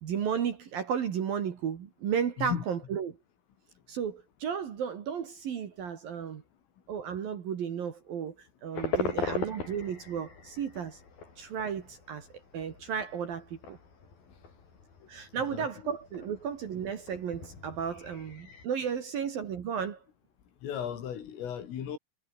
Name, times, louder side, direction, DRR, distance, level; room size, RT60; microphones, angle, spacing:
voice 1, 0.0-3.1 3.9-6.4 6.9-8.3 8.6-11.0 11.4-12.3 12.5-13.8 15.1-20.0, right 7 dB, 55° right, 3.4 m, -34 dB
sound 1, 8.7-18.7, left 4 dB, 50° left, 8.1 m, -40 dB
voice 2, 15.3-15.9 20.6-22.0, left 9 dB, 90° left, 6.1 m, -36 dB
omnidirectional pair, 5.7 m